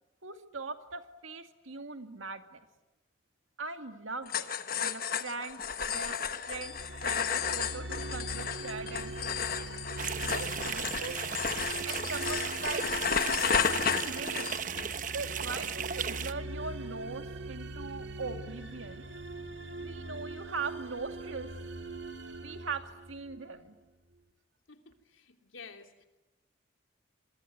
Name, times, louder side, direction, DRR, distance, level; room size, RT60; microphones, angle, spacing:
voice 1, 0.2-2.6 3.6-4.5 4.8-6.2 6.5-9.4 10.1-11.2 11.8-12.9 13.3-13.7 14.0-14.5 15.1-19.1 19.8-21.5 22.4-23.7, right 4 dB, 85° right, 7 dB, 2.3 m, -41 dB
sound 1, 4.3-14.8, left 7 dB, 45° left, 1.3 m, -33 dB
sound 2, 6.4-23.6, right 2 dB, 60° right, 2.3 m, -42 dB
sound 3, 10.0-16.3, right 7 dB, 40° right, 1.0 m, -36 dB
voice 2, 24.7-26.0, left 5 dB, 80° left, 5 dB, 3.1 m, -51 dB
27.0 x 23.0 x 9.5 m, 1.0 s
head